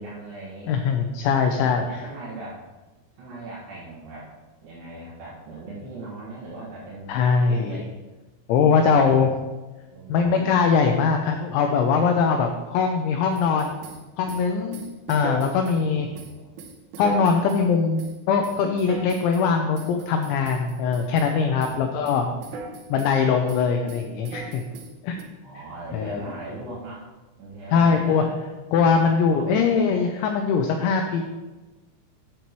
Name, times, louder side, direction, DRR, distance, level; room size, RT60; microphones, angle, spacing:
voice 1, 0.0-0.7 1.5-2.6 3.1-4.3 4.6-7.9 8.7-9.3 9.9-10.4 15.7-16.5 21.6-22.1 25.4-27.1 27.4-28.3 29.1-30.0, right 1 dB, 60° right, -10 dB, 2.9 m, -39 dB
voice 2, 0.7-1.9 7.1-7.8 8.5-9.3 10.1-13.8 14.2-14.8 15.1-16.1 17.0-22.3 22.9-24.6 25.0-25.2 25.9-26.1 27.7-28.3 28.7-31.2, left 5 dB, 85° left, 4 dB, 2.6 m, -21 dB
sound 1, 13.4-15.8 16.2-17.7 18.0-18.2 18.4-19.5 19.8-21.3 21.6-21.8 22.1-23.2 23.5-25.2, right 3 dB, 80° right, 3.2 m, -38 dB
9.9 x 7.4 x 3.1 m, 1.2 s
omnidirectional pair, 5.9 m